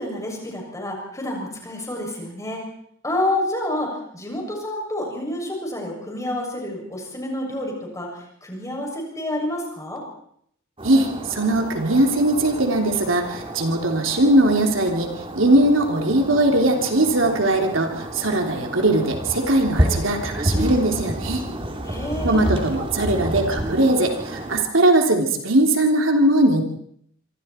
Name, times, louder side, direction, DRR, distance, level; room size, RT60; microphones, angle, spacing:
voice 1, 0.0-2.6 3.0-10.0 21.8-22.4, left 1 dB, 15° left, 0 dB, 7.2 m, -29 dB
sound 1, 10.8-24.6, right 1 dB, 25° right, 2.8 m, -29 dB
voice 2, 10.8-15.1 15.3-21.4 22.2-26.6, right 1 dB, 75° right, 3 dB, 3.4 m, -20 dB
26.0 x 25.0 x 4.5 m, 0.66 s
head